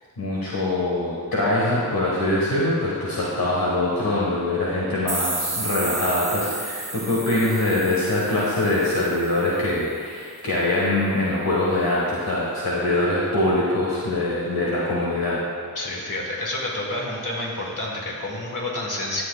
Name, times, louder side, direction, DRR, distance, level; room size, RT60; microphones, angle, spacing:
voice 1, 0.2-15.4, left 1 dB, 75° left, -6 dB, 1.5 m, -23 dB
sound 1, 5.1-9.7, right 3 dB, 55° right, 1.0 m, -32 dB
voice 2, 15.8-19.2, left 1 dB, 55° left, -3 dB, 2.0 m, -29 dB
13.0 x 7.6 x 2.3 m, 2.1 s
cardioid pair, 50°, 37 cm